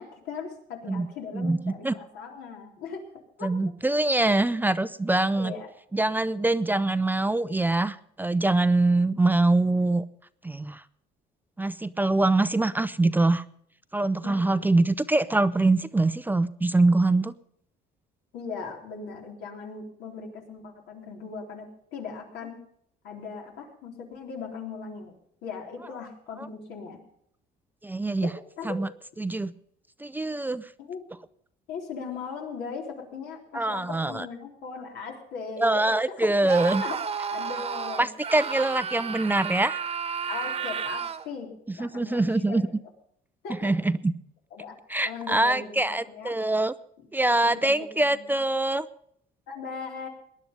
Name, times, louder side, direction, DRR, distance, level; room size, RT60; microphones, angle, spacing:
voice 1, 0.0-3.0 3.4-3.5 5.4-5.7 14.2-14.7 18.3-22.6 23.0-25.1 25.4-27.0 28.2-28.8 30.8-31.0 31.7-36.5 36.8-37.0 37.3-38.1 40.3-41.5 41.8-42.6 43.4-43.7 44.5-44.7 45.0-45.8 46.1-46.3 47.4-47.7 48.1-48.3 49.5-50.1, left 5 dB, 80° left, 1 dB, 3.8 m, -38 dB
voice 2, 1.3-1.9 3.4-5.5 5.9-10.0 10.4-10.8 11.6-13.4 13.9-17.3 26.4-26.5 27.8-28.3 28.6-28.9 29.2-29.5 30.0-30.7 33.5-34.3 35.6-36.8 38.0-39.8 41.8-42.6 43.6-44.1 44.9-46.7 47.1-48.9, right 2 dB, 10° right, 14 dB, 0.5 m, -24 dB
Screaming, 36.4-41.3, right 6 dB, 35° right, 1.2 m, -32 dB
19.0 x 10.5 x 5.3 m, 0.68 s
cardioid pair, 110°, 17 cm